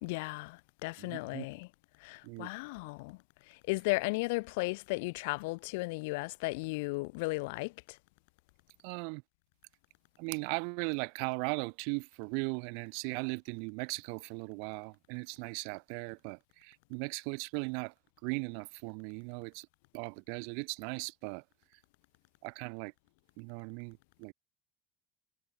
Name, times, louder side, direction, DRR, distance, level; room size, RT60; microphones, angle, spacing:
voice 1, 0.0-1.7 2.0-3.2 3.5-8.0, left 26 dB, 85° left, 2.6 m, -35 dB
voice 2, 1.0-1.5 2.2-2.5 8.8-9.2 10.2-17.9 18.2-19.7 19.9-21.4 22.4-22.9 23.4-24.3, right 40 dB or more, 70° right, 2.9 m, -38 dB
cardioid pair, 165°, 0 cm